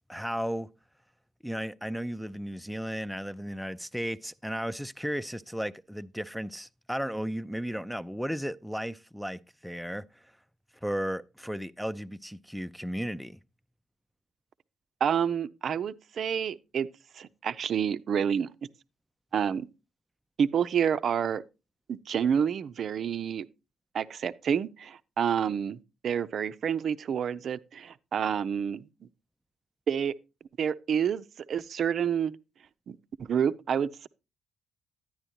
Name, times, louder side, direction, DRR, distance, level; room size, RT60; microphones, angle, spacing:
voice 1, 0.1-0.7 1.4-10.2 10.8-13.4, equal, ahead, 0.5 m, -34 dB
voice 2, 15.0-16.9 17.1-18.5 19.3-19.7 20.4-21.4 21.9-23.5 23.9-25.8 26.0-28.8 29.9-30.1 30.6-32.4 32.9-34.1, right 8 dB, 55° right, 0.5 m, -28 dB
11.0 x 10.0 x 2.8 m
figure-of-eight pair, 45°, 0 cm